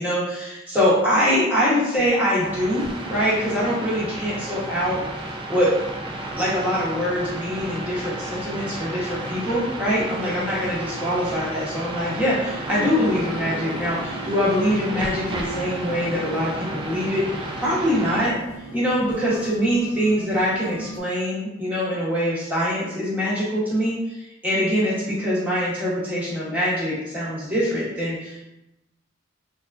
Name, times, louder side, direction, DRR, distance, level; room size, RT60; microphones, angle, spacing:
voice 1, 0.0-5.0 5.5-5.7 6.4-18.3 18.7-24.2 24.4-28.4, equal, 10° right, -8 dB, 0.9 m, -23 dB
sound 1, 2.3-18.3, right 1 dB, 25° right, 0.3 m, -33 dB
sound 2, 12.6-21.0, right 1 dB, 75° left, 0.5 m, -37 dB
3.5 x 2.3 x 2.4 m, 0.90 s
head